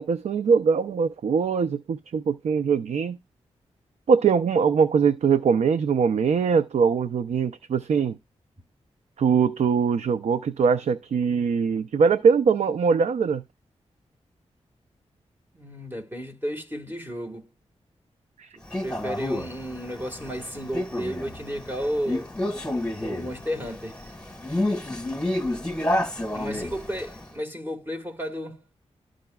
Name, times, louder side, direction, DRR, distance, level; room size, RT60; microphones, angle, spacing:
voice 1, 0.0-3.2 4.1-8.2 9.2-13.4 18.4-18.5, right 6 dB, 75° right, 0.5 m, -22 dB
voice 2, 15.5-17.5 18.5-22.3 23.0-24.0 26.3-28.6, equal, 20° right, 1.6 m, -33 dB
Male speech man speaking, 18.7-27.2, left 1 dB, 10° left, 1.6 m, -30 dB
13.0 x 4.9 x 2.3 m
cardioid pair, 70°, 12 cm